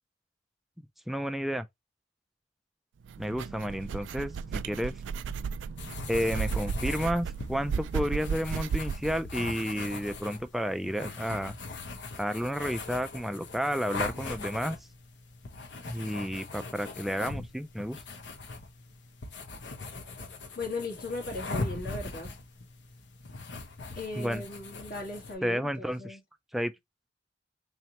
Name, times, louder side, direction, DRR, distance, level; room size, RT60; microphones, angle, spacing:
voice 1, 1.1-1.7 3.2-5.0 6.1-11.6 12.2-14.8 15.8-18.0 24.2-24.4 25.4-26.2 26.5-26.7, equal, ahead, 0.3 m, -31 dB
Olfateo Ratón, 3.1-9.2, right 6 dB, 85° right, 0.3 m, -34 dB
sound 1, 5.8-25.3, left 3 dB, 70° left, 0.9 m, -40 dB
voice 2, 20.6-22.3 23.9-26.2, left 2 dB, 55° left, 1.4 m, -37 dB
3.9 x 3.2 x 2.9 m
head